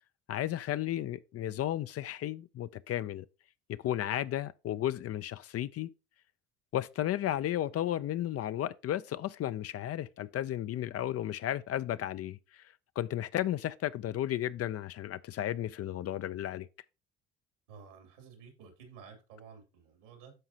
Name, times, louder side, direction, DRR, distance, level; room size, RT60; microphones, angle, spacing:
voice 1, 0.3-3.3 3.7-5.9 6.7-12.4 13.0-16.7, left 12 dB, 40° left, 0.6 m, -33 dB
voice 2, 17.7-20.3, right 6 dB, 80° right, 2.8 m, -52 dB
13.0 x 4.8 x 2.8 m
hypercardioid pair, 60°, 36 cm